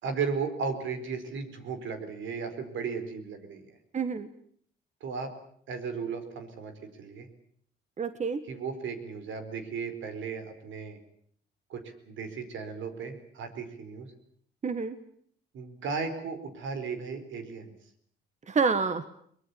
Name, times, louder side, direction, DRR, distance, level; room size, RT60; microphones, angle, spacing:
voice 1, 0.0-3.8 5.0-5.3 5.7-6.7 7.0-7.3 8.5-11.0 11.7-11.8 12.1-14.1 15.5-17.7, right 5 dB, 75° right, 8 dB, 4.6 m, -35 dB
voice 2, 3.9-4.3 8.0-8.4 14.6-15.0 18.5-19.1, right 5 dB, 35° right, 11 dB, 1.5 m, -28 dB
22.5 x 21.0 x 8.6 m, 0.62 s
cardioid pair, 90°, 20 cm